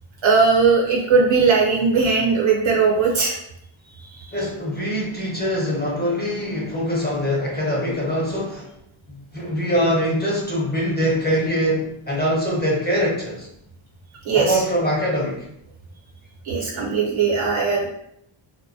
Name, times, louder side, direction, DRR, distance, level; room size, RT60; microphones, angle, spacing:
voice 1, 0.2-3.4 4.2-4.3 14.2-14.6 16.4-17.9, right 4 dB, 70° right, -2 dB, 0.9 m, -18 dB
voice 2, 4.3-8.7 9.1-13.5 14.3-15.5, equal, 20° left, -4 dB, 0.5 m, -23 dB
2.2 x 2.1 x 2.6 m, 0.75 s
wide cardioid pair, 110°, 49 cm